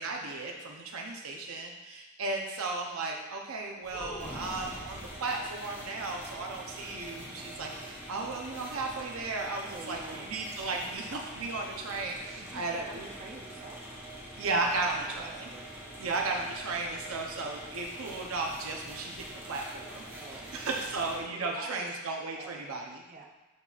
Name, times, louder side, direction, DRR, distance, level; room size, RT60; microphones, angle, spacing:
voice 1, 0.0-13.1 14.4-15.5 16.0-20.1 20.3-23.0, right 3 dB, 70° right, 1 dB, 0.7 m, -35 dB
sound 1, 3.8-5.3 7.0-8.0 8.2-8.3 8.7-9.0, equal, 35° left, 1.6 m, -44 dB
sound 2, 4.2-21.2, right 1 dB, 15° right, 1.4 m, -45 dB
voice 2, 9.6-10.3 12.3-13.8 15.1-15.7 20.1-21.0 21.4-21.9 22.3-22.6 23.1-23.3, right 3 dB, 35° right, 1 dB, 0.6 m, -47 dB
11.5 x 4.0 x 2.4 m, 1.1 s
head